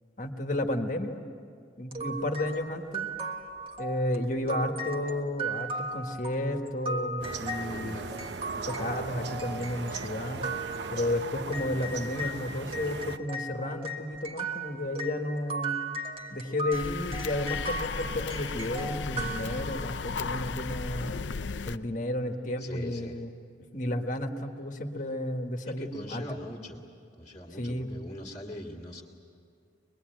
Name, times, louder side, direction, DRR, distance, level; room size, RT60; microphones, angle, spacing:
voice 1, 0.2-1.2 1.8-3.1 3.8-8.1 8.6-10.5 10.9-15.8 16.3-21.1 21.7-23.3 23.7-26.2 27.6-28.0, left 1 dB, 45° left, 5 dB, 1.6 m, -32 dB
sound 1, 1.9-12.4 12.7-20.1, right 2 dB, 30° right, 1.5 m, -37 dB
sound 2, 7.2-13.2, right 4 dB, 70° right, 0.8 m, -38 dB
voice 2, 7.6-8.1 22.6-23.2 25.7-26.8 27.2-29.0, left 1 dB, 15° left, -4 dB, 2.0 m, -42 dB
sound 3, 16.7-21.8, left 4 dB, 80° left, 0.6 m, -35 dB
24.5 x 21.5 x 9.2 m, 2.3 s
head